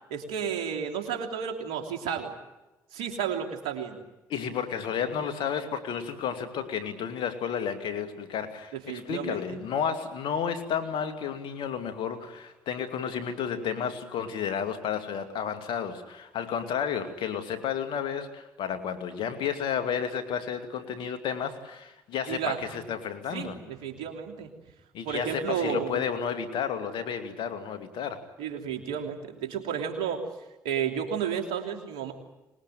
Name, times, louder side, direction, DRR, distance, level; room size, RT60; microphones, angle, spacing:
voice 1, 0.1-2.3 2.9-4.0 8.7-9.6 22.3-22.8 23.3-24.5 25.0-26.1 28.4-30.2 30.6-32.1, right 7 dB, 85° right, 3 dB, 3.1 m, -32 dB
voice 2, 4.3-23.6 24.9-28.2, left 7 dB, 75° left, 8 dB, 2.6 m, -32 dB
25.0 x 20.5 x 9.3 m, 1.1 s
hypercardioid pair, 50°, 8 cm